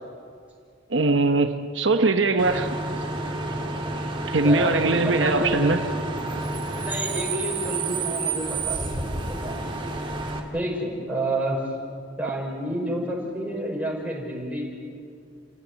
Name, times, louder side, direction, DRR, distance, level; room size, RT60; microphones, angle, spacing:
voice 1, 0.9-2.7 4.3-5.8, right 3 dB, 70° right, 6 dB, 1.1 m, -21 dB
Bus / Idling / Screech, 2.4-10.4, right 2 dB, 25° right, 2.8 m, -30 dB
voice 2, 4.4-5.8 6.8-9.8 10.5-11.6 12.2-14.6, right 1 dB, 10° right, -2 dB, 5.6 m, -30 dB
29.5 x 16.5 x 9.6 m, 2.2 s
head